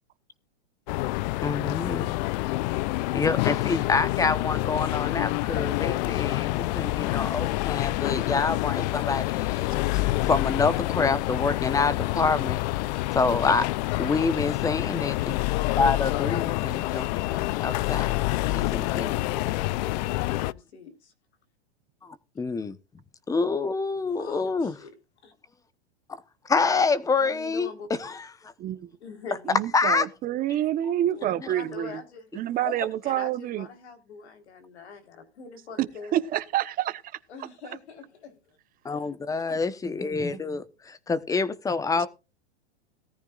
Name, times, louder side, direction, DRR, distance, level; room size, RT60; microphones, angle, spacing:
sound 1, 0.9-20.5, left 19 dB, 40° left, 0.5 m, -27 dB
voice 1, 1.4-2.1 2.4-2.5 3.1-13.7 14.0-15.4 15.7-17.2 17.6-18.2 18.5-19.1 22.0-22.8 23.3-24.7 26.4-28.5 29.7-30.1 32.6-32.9 38.8-42.1, left 4 dB, 10° left, 1.0 m, -27 dB
voice 2, 18.5-21.1 24.1-24.9 25.2-25.3 27.2-28.0 29.0-29.6 31.1-32.3 33.0-36.2 37.3-38.4 39.3-39.4, left 4 dB, 80° left, 4.1 m, -43 dB
voice 3, 28.6-28.9 29.5-32.0 32.3-33.7 35.8-37.0, right 12 dB, 25° right, 1.1 m, -28 dB
18.0 x 14.0 x 2.5 m
hypercardioid pair, 135°, 33 cm